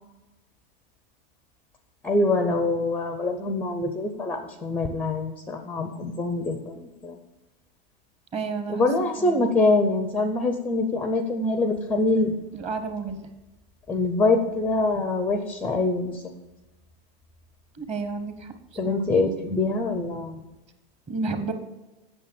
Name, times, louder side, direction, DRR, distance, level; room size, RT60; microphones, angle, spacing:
voice 1, 2.0-7.2 8.7-12.3 13.9-16.2 18.8-20.5, left 2 dB, 5° left, 7 dB, 0.5 m, -24 dB
voice 2, 8.3-8.9 9.2-9.5 12.5-13.3 17.7-18.5 18.8-19.0 21.1-21.5, right 4 dB, 20° right, 8 dB, 1.0 m, -31 dB
8.5 x 6.5 x 6.9 m, 1.0 s
supercardioid pair, 150°, 31 cm